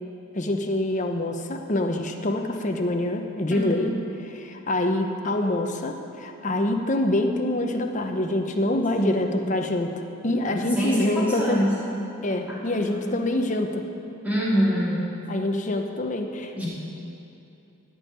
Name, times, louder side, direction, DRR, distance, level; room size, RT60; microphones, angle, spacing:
voice 1, 0.3-3.9 4.2-9.9 10.2-11.6 12.2-13.8 15.3-16.6, left 1 dB, 35° left, 4 dB, 0.8 m, -26 dB
voice 2, 9.0-9.3 10.5-11.7 12.5-12.6 13.0-13.1 14.2-15.0 16.6-16.7, equal, 5° right, -9 dB, 3.1 m, -25 dB
16.0 x 5.5 x 8.7 m, 2.8 s
head